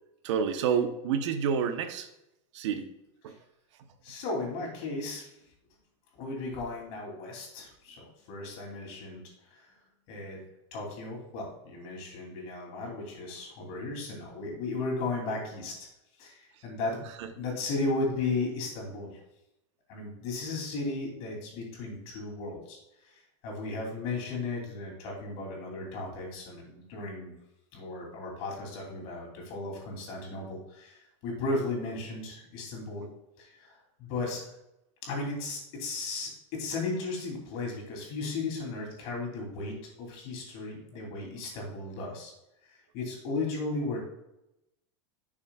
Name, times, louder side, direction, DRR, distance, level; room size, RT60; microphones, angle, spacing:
voice 1, 0.2-2.1 2.5-2.9 3.2-3.3, right 7 dB, 75° right, 8 dB, 0.9 m, -28 dB
voice 2, 4.0-5.3 6.1-9.7 10.1-10.4 10.7-15.8 16.2-17.1 17.3-19.2 19.9-22.8 23.0-27.3 27.7-33.0 33.4-34.4 35.0-42.3 42.7-44.1, left 3 dB, 45° left, -1 dB, 3.0 m, -35 dB
10.5 x 6.3 x 2.4 m, 0.87 s
supercardioid pair, 160°, 15 cm